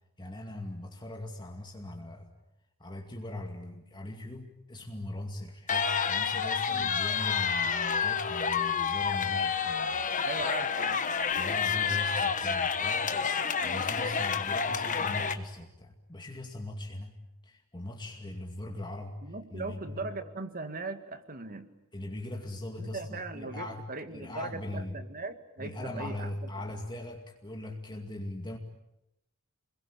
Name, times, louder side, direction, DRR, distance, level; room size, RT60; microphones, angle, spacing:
voice 1, 0.2-2.3 2.8-10.3 11.4-13.1 13.6-17.2 17.4-19.2 19.5-20.0 21.9-23.8 24.1-25.0 25.6-28.6, left 1 dB, 20° left, 2 dB, 2.3 m, -40 dB
sound 1, 5.7-15.3, left 6 dB, 35° left, 1.4 m, -29 dB
voice 2, 10.2-11.0 13.6-13.9 19.2-21.7 22.8-26.3, right 3 dB, 40° right, 9 dB, 2.0 m, -39 dB
29.0 x 22.0 x 8.7 m, 0.88 s
head